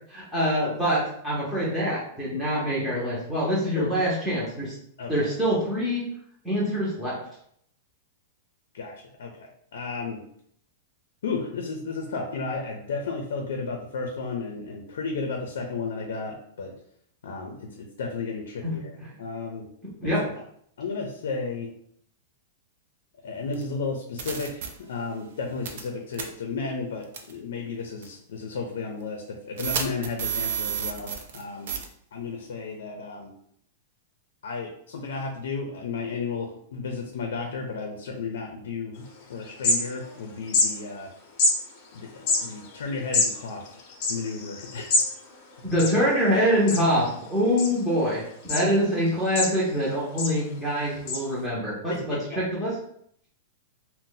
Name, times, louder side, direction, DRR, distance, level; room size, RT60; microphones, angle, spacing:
voice 1, 0.1-4.7 5.1-6.0 6.4-7.2 18.6-18.8 20.0-20.3 45.6-52.7, equal, ahead, -9 dB, 0.7 m, -25 dB
voice 2, 9.2-10.2 11.2-16.7 17.2-19.7 20.0-20.1 20.8-21.7 23.2-31.7 32.1-33.3 34.4-39.0 39.3-41.1 41.9-43.8 44.1-45.0 51.9-52.4, left 4 dB, 80° left, 2 dB, 0.5 m, -33 dB
sound 1, 23.5-23.6 24.2-24.7 25.7-25.9 26.1-26.2 27.1-27.3 28.0-28.1 29.6-31.4 31.7-31.8, right 7 dB, 55° right, 0.5 m, -30 dB
sound 2, 39.1-39.2 39.4-40.2 40.5-40.7 41.4-41.5 42.1-45.1 45.4-45.5 45.7-46.3 46.7-47.1 47.6-48.1 48.5-48.6 49.1-49.8 50.2-50.4 51.1-51.2, left 3 dB, 40° left, 0.7 m, -25 dB
2.6 x 2.1 x 3.8 m, 0.68 s
supercardioid pair, 170°, 0 cm